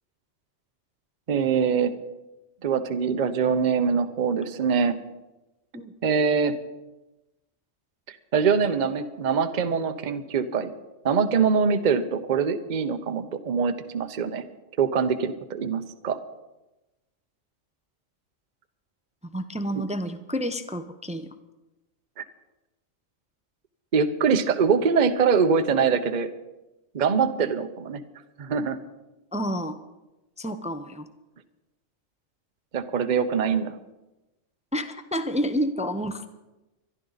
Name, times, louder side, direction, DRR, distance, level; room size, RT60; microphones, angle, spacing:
voice 1, 1.3-1.9 2.6-5.0 6.0-6.5 8.3-10.7 11.0-14.4 14.8-16.2 19.7-19.8 22.2-22.3 23.9-26.3 26.9-28.0 28.4-28.8 32.7-33.8, right 6 dB, 40° right, 9 dB, 0.8 m, -23 dB
voice 2, 19.2-21.3 29.3-29.8 30.4-31.1 34.7-36.3, equal, 10° right, 10 dB, 0.4 m, -29 dB
24.0 x 11.5 x 4.0 m, 1.0 s
omnidirectional pair, 1.4 m